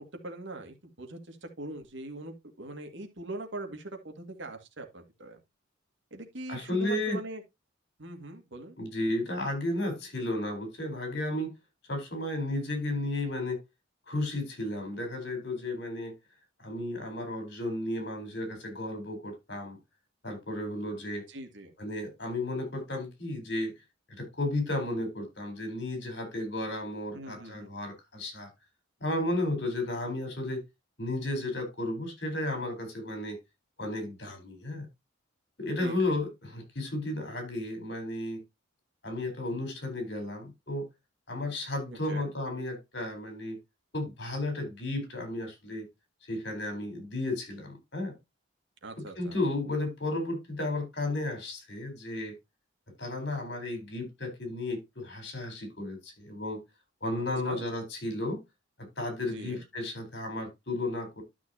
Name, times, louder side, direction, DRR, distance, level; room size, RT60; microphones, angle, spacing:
voice 1, 0.2-5.4 6.1-7.4 8.0-8.8 21.3-21.7 27.1-27.7 35.8-36.0 41.9-42.3 48.8-49.4 57.4-57.6 59.3-59.6, right 2 dB, 65° right, 2.2 m, -41 dB
voice 2, 6.5-7.2 8.8-11.5 11.9-13.6 14.1-16.1 16.6-19.8 20.2-21.3 21.8-23.7 24.1-28.5 29.0-30.6 31.0-33.4 33.8-34.9 35.6-38.4 39.0-40.9 41.3-43.6 43.9-45.9 46.3-48.1 49.0-52.3 53.0-56.6 57.0-58.4 59.0-61.2, left 1 dB, 55° left, 4.2 m, -33 dB
12.5 x 6.1 x 2.8 m
head